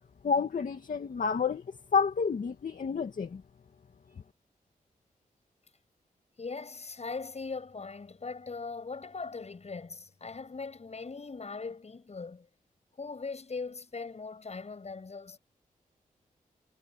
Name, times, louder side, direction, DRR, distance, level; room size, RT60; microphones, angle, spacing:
voice 1, 0.2-1.6 1.9-3.4, left 5 dB, 65° left, 2.3 m, -29 dB
voice 2, 6.4-12.5 13.0-15.4, left 4 dB, 50° left, 7.6 m, -40 dB
cardioid pair, 70°, 15 cm